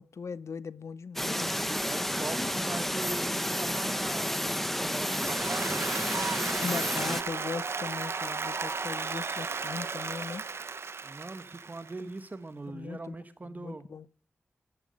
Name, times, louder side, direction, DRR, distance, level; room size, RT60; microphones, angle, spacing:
voice 1, 0.0-1.8 6.6-10.5 12.7-13.2 13.4-14.1, left 5 dB, 80° left, 0.7 m, -39 dB
sound 1, 1.2-7.2, equal, 5° left, 1.1 m, -31 dB
voice 2, 1.8-6.1 11.0-13.9, right 2 dB, 35° right, 1.1 m, -41 dB
Applause, 4.9-12.1, right 4 dB, 60° right, 0.9 m, -35 dB
13.5 x 13.0 x 6.4 m
wide cardioid pair, 100°, 5 cm